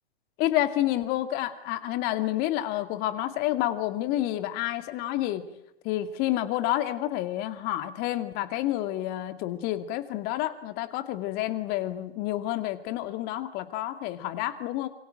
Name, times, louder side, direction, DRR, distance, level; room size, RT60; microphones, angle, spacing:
voice 1, 0.4-5.5 5.8-14.9, left 14 dB, 30° left, 10 dB, 2.3 m, -29 dB
27.0 x 25.0 x 7.7 m, 0.81 s
hypercardioid pair, 130°, 33 cm